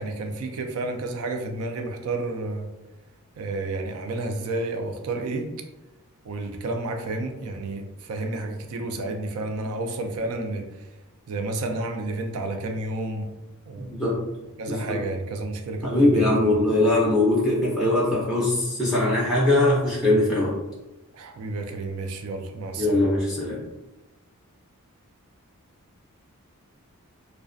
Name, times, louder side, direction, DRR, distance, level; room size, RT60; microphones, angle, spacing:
voice 1, 0.0-2.7 3.4-5.5 6.2-10.9 11.3-13.3 13.7-13.9 14.6-16.7 21.1-23.0, right 2 dB, 70° right, 4 dB, 0.4 m, -31 dB
voice 2, 13.8-14.2 14.7-14.8 15.8-20.5 22.8-23.6, left 1 dB, ahead, -7 dB, 0.4 m, -21 dB
2.4 x 2.1 x 2.5 m, 1.0 s
head